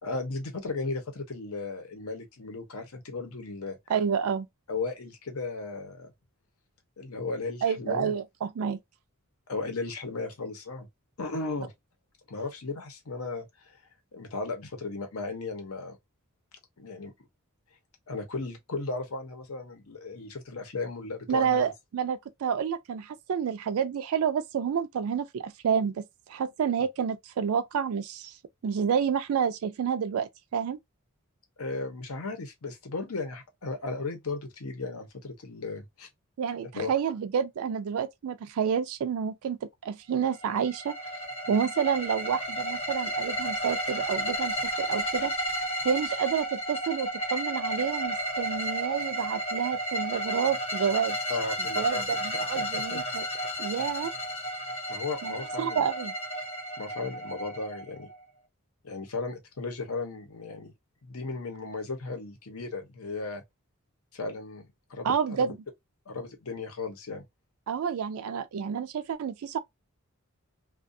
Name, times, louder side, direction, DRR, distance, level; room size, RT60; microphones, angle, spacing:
voice 1, 0.0-3.8 4.7-6.1 7.0-8.1 9.5-10.9 11.2-11.7 12.3-13.8 14.1-16.0 16.8-17.1 18.1-21.7 31.6-36.1 36.7-36.9 51.3-52.0 52.5-53.0 54.9-55.8 56.8-58.1 58.8-60.7 61.0-63.4 64.1-65.4 66.1-67.2, left 3 dB, 75° left, 0.8 m, -35 dB
voice 2, 3.9-4.5 7.6-8.8 21.3-28.3 28.6-30.8 36.4-40.9 41.5-45.3 45.8-51.2 51.8-53.3 53.6-54.1 55.2-56.1 65.0-65.5 67.7-69.6, right 7 dB, 75° right, 0.4 m, -29 dB
sound 1, 40.3-58.2, right 1 dB, 30° left, 0.8 m, -32 dB
2.4 x 2.3 x 2.6 m
head